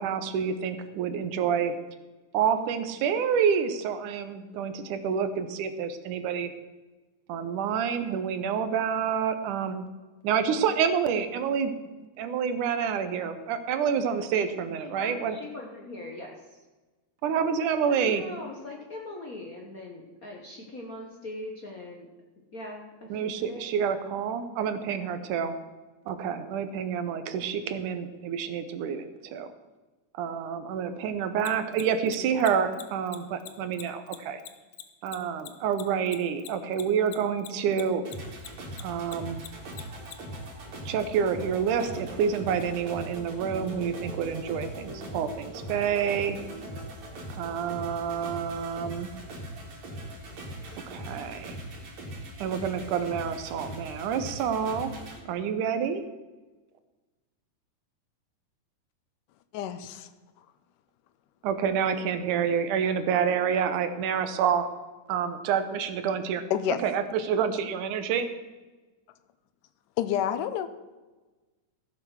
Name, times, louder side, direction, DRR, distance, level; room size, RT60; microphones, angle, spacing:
voice 1, 0.0-1.7 2.3-6.5 7.3-9.8 10.2-11.7 12.2-15.4 17.2-18.2 23.1-25.5 26.1-29.5 30.2-34.4 35.0-38.0 38.8-39.4 40.9-46.4 47.4-49.1 50.9-51.6 52.4-54.9 55.3-56.0 61.4-64.7 65.1-66.4 66.8-68.3, right 7 dB, 80° right, 10 dB, 2.4 m, -28 dB
voice 2, 14.8-16.5 17.8-22.1 22.5-23.7, left 2 dB, 50° left, 0 dB, 1.0 m, -41 dB
Mechanisms, 31.4-38.1 38.4-40.1, left 13 dB, 70° left, 1.4 m, -42 dB
sound 1, 38.0-55.2, right 1 dB, 60° right, 3.7 m, -40 dB
voice 3, 59.5-60.1 66.5-66.8 70.0-70.7, left 10 dB, 85° left, 11 dB, 2.3 m, -28 dB
15.5 x 7.4 x 6.4 m, 1.2 s
omnidirectional pair, 3.6 m